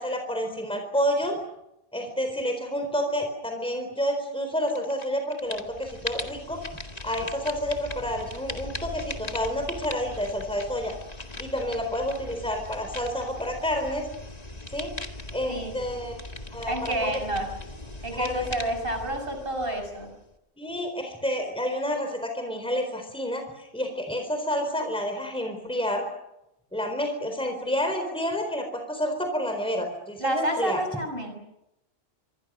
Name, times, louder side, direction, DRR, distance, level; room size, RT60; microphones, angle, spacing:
voice 1, 0.0-1.4 1.9-6.6 7.0-10.9 11.4-14.1 14.7-14.9 15.3-16.2 16.5-17.2 18.1-18.5 20.6-26.0 26.7-30.8, equal, 5° left, 4 dB, 4.2 m, -29 dB
sound 1, 4.7-5.1 5.3-20.3, left 2 dB, 30° left, 2.1 m, -39 dB
voice 2, 16.7-17.5 18.0-20.1 30.2-31.4, right 1 dB, 45° right, 5 dB, 6.6 m, -29 dB
26.0 x 25.0 x 6.4 m, 0.86 s
omnidirectional pair, 1.3 m